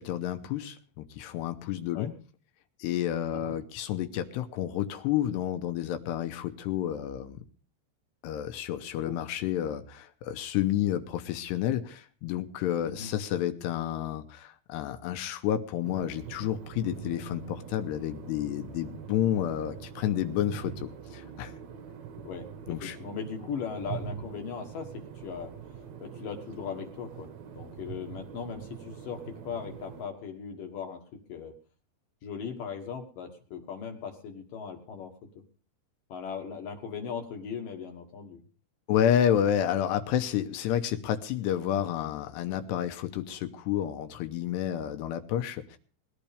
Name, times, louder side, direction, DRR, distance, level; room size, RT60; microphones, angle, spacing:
voice 1, 0.0-2.1 2.8-7.4 8.2-21.5 22.7-23.0 38.9-45.8, left 11 dB, 80° left, 9 dB, 2.9 m, -30 dB
sound 1, 15.8-30.0, right 8 dB, 75° right, 1.7 m, -43 dB
voice 2, 22.2-25.5 26.0-27.3 27.5-31.0 31.3-31.5 32.2-35.1 36.1-38.4, left 6 dB, 60° left, 4 dB, 2.7 m, -38 dB
21.0 x 12.0 x 3.4 m, 0.40 s
omnidirectional pair, 5.0 m